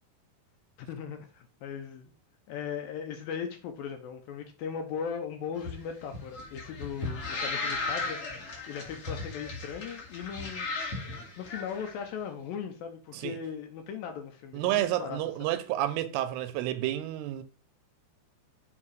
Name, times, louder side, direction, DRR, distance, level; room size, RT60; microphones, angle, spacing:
voice 1, 0.8-2.1 2.5-8.2 8.7-11.0 11.4-15.2, left 7 dB, 75° left, 2.2 m, -38 dB
sound 1, 5.6-11.9, left 3 dB, 45° left, 2.7 m, -36 dB
voice 2, 14.5-17.4, right 13 dB, 85° right, 2.6 m, -30 dB
7.5 x 3.8 x 4.6 m
omnidirectional pair, 4.7 m